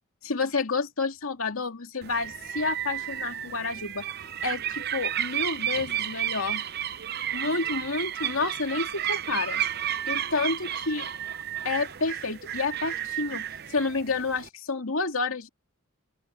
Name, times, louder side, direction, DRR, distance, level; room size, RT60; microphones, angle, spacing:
voice 1, 0.2-4.0 4.4-6.6 7.3-9.6 10.1-11.1 11.6-13.4 13.7-15.5, left 3 dB, 80° left, 2.3 m, -29 dB
sound 1, 2.0-14.5, right 10 dB, 50° right, 0.8 m, -32 dB
open air
head